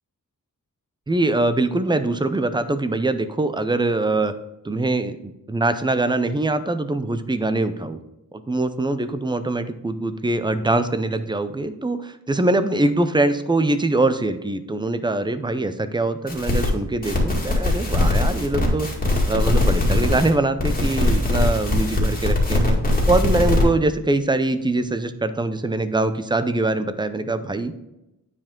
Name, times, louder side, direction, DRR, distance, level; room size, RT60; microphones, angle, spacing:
voice 1, 1.1-4.3 4.6-8.0 8.3-18.9 19.3-22.8 23.1-27.7, right 2 dB, 15° right, 10 dB, 0.5 m, -23 dB
sound 1, 16.3-16.7 17.0-20.3 20.6-23.6, left 2 dB, 25° left, 2.1 m, -21 dB
9.7 x 4.9 x 3.7 m, 0.91 s
wide cardioid pair, 120°, 34 cm